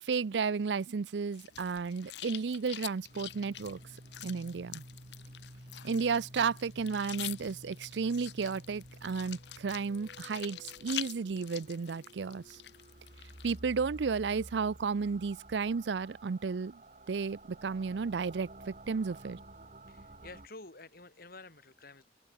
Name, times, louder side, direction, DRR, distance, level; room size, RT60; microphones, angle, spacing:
voice 1, 0.0-3.8 4.2-4.8 5.8-12.6 13.4-16.8 17.1-19.4, right 5 dB, 80° right, 0.5 m, -33 dB
sound 1, 1.3-13.6, left 13 dB, 70° left, 0.8 m, -46 dB
sound 2, 3.1-20.5, right 1 dB, 45° right, 3.8 m, -52 dB
voice 2, 19.9-22.0, left 3 dB, 55° left, 4.3 m, -50 dB
open air
head